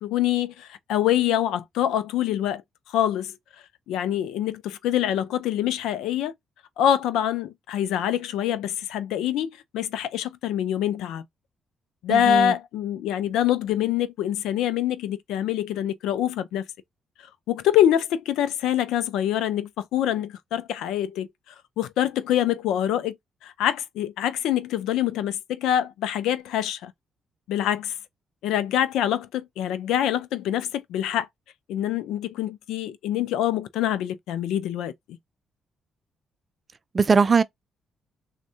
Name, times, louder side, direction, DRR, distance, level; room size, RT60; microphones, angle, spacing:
voice 1, 0.0-2.6 2.9-3.3 3.9-6.3 6.8-11.2 12.0-16.7 17.5-21.3 21.8-23.1 23.4-26.9 27.5-27.9 28.4-31.3 31.7-35.2, left 11 dB, 90° left, 0.3 m, -25 dB
voice 2, 12.1-12.5 36.9-37.4, right 5 dB, 35° right, 0.3 m, -20 dB
3.5 x 2.1 x 2.7 m
cardioid pair, 90°, 0 cm